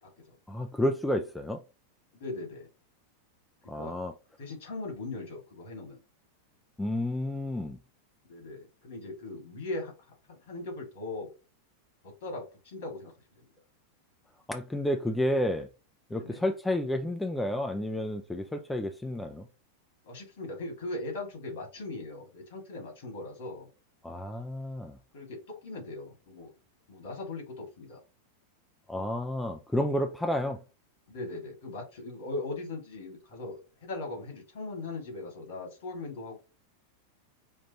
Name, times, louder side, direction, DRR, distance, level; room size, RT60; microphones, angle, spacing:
voice 1, 0.5-1.6 3.7-4.1 6.8-7.8 14.5-15.7 16.1-19.5 24.0-25.0 28.9-30.6, left 1 dB, 5° left, 0.4 m, -30 dB
voice 2, 2.1-2.7 3.7-4.0 4.4-6.0 8.3-11.3 12.0-13.5 16.1-16.4 20.0-23.7 25.1-26.5 26.9-28.0 31.1-36.4, left 2 dB, 60° left, 2.1 m, -39 dB
5.3 x 2.5 x 2.9 m
figure-of-eight pair, 90°, 0 cm